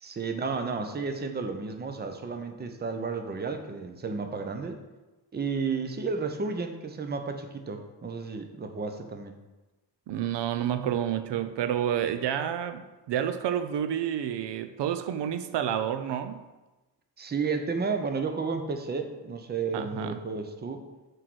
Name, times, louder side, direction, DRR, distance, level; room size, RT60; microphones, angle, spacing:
voice 1, 0.0-4.8 5.3-9.4 17.2-20.8, right 4 dB, 25° right, 7 dB, 0.6 m, -32 dB
voice 2, 10.1-16.4 19.7-20.2, right 9 dB, 75° right, 10 dB, 0.6 m, -29 dB
6.3 x 4.7 x 6.1 m, 1.1 s
wide cardioid pair, 145°, 42 cm